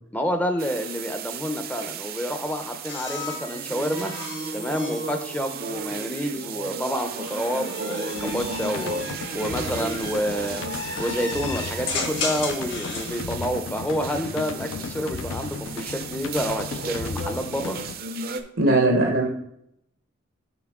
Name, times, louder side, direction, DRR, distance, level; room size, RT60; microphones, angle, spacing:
voice 1, 0.1-4.1 4.5-9.0 9.3-10.6 11.0-17.8, equal, 10° left, 6 dB, 0.5 m, -28 dB
sound 1, 0.6-18.4, right 5 dB, 45° right, 0.5 m, -35 dB
sound 2, 2.9-6.2 7.0-13.2 14.6-15.2, left 4 dB, 55° left, 1.3 m, -35 dB
sound 3, 8.1-17.9, left 5 dB, 80° left, 0.4 m, -35 dB
voice 2, 18.6-19.3, right 2 dB, 80° right, 1 dB, 0.9 m, -19 dB
5.9 x 5.8 x 3.6 m, 0.76 s
head